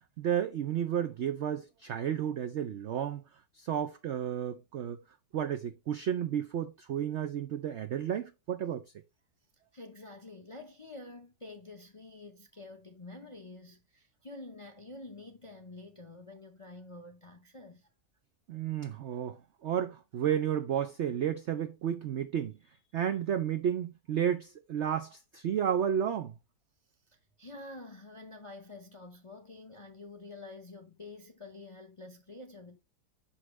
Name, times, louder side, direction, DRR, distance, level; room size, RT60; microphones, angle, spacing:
voice 1, 0.2-3.2 3.5-5.0 5.3-8.8 18.5-22.6 22.9-26.3, right 9 dB, 80° right, 0.6 m, -32 dB
voice 2, 9.7-17.9 27.1-32.8, left 2 dB, 35° left, 0.4 m, -48 dB
6.5 x 5.6 x 3.1 m
omnidirectional pair, 1.8 m